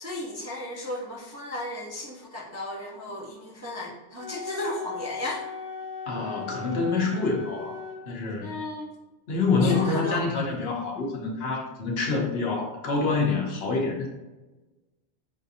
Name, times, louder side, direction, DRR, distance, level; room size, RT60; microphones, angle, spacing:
voice 1, 0.0-5.5 8.4-8.9 9.6-10.2, left 1 dB, 20° right, -4 dB, 0.4 m, -34 dB
Wind instrument woodwind instrument, 4.1-8.0, left 5 dB, 25° left, 1.1 m, -38 dB
voice 2, 6.1-7.8 8.1-8.6 9.3-14.1, left 4 dB, 75° left, -1 dB, 1.1 m, -26 dB
5.5 x 2.5 x 2.7 m, 1.1 s
omnidirectional pair, 1.1 m